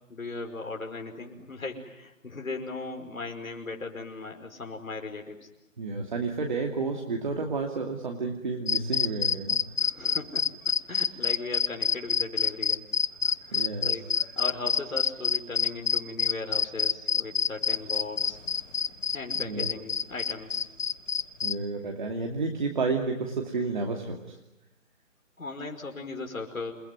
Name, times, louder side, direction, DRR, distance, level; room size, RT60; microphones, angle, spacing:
voice 1, 0.1-5.5 9.8-12.8 13.1-18.4 19.1-20.6 25.4-26.7, left 3 dB, 85° left, 2 dB, 5.4 m, -38 dB
voice 2, 5.8-9.7 13.5-14.0 19.4-19.7 21.4-24.4, right 3 dB, 35° right, 2 dB, 2.7 m, -31 dB
sound 1, 8.7-21.6, left 6 dB, 65° left, 1.1 m, -26 dB
28.5 x 21.0 x 9.5 m, 0.95 s
hypercardioid pair, 175°, 40 cm